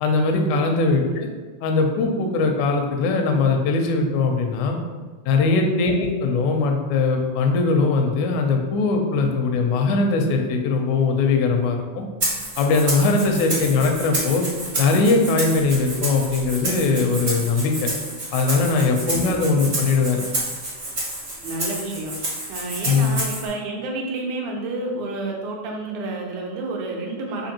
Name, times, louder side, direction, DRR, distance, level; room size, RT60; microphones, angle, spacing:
voice 1, 0.0-1.3 1.6-4.8 5.3-12.1 12.6-14.4 14.8-17.9 18.3-20.2 22.8-23.2, left 3 dB, 80° left, 3 dB, 1.9 m, -20 dB
Rattle (instrument), 12.2-23.5, right 1 dB, 55° right, 0.6 m, -29 dB
voice 2, 19.3-19.7 21.4-27.5, right 2 dB, 80° right, 0 dB, 2.0 m, -30 dB
5.1 x 2.6 x 2.8 m, 1.5 s
omnidirectional pair, 3.4 m